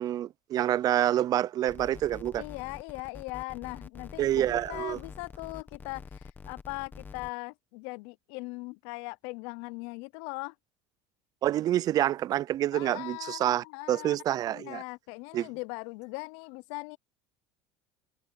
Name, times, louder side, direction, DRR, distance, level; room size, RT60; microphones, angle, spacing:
voice 1, 0.0-2.4 4.2-5.0 11.4-14.8 15.3-15.5, right 12 dB, 40° right, 0.4 m, -27 dB
sound 1, 1.7-7.3, left 5 dB, 20° left, 1.2 m, -46 dB
voice 2, 2.4-10.5 12.7-17.0, left 27 dB, 75° left, 0.5 m, -40 dB
supercardioid pair, 125°, 10 cm